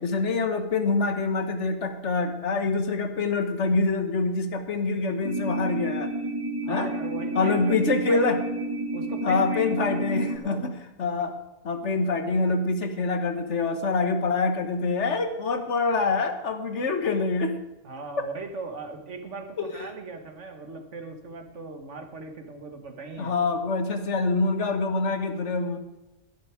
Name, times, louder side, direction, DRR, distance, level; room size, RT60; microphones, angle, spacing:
voice 1, 0.0-6.1 6.7-6.9 7.3-8.4 9.2-10.7 11.0-11.3 11.6-17.6 19.6-19.9 23.2-25.8, left 3 dB, 80° left, 7 dB, 1.6 m, -25 dB
sound 1, 5.2-10.4, right 2 dB, 20° right, 0.9 m, -31 dB
voice 2, 6.6-8.4 8.9-10.7 17.8-23.4, right 3 dB, 85° right, 6 dB, 1.8 m, -39 dB
12.0 x 11.0 x 5.0 m, 0.95 s
omnidirectional pair, 1.2 m